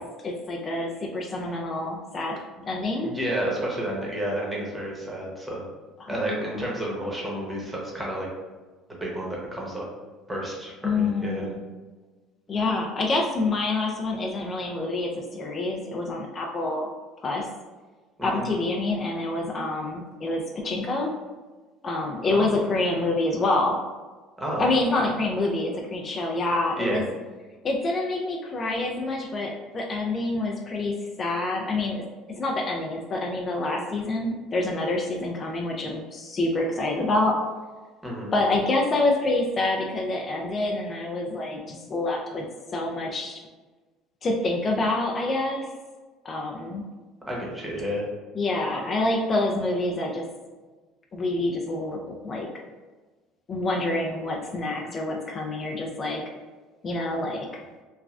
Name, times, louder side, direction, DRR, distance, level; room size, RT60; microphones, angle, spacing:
voice 1, 0.2-3.1 6.0-6.5 10.8-11.6 12.5-16.9 17.2-17.5 18.2-21.1 21.8-23.8 24.6-27.0 27.6-37.4 38.3-42.4 42.7-43.4 44.2-45.7 46.2-46.8 48.3-50.2 51.1-52.5 53.5-56.2 56.8-57.6, left 2 dB, 35° left, 0 dB, 0.3 m, -27 dB
voice 2, 3.0-5.7 6.1-8.3 9.0-9.8 10.3-11.5 18.2-18.4 22.3-22.5 24.4-24.7 26.8-27.0 38.0-38.3 47.3-48.1, right 1 dB, 10° right, -3 dB, 0.9 m, -30 dB
3.1 x 2.2 x 2.4 m, 1.3 s
cardioid pair, 110°, 0 cm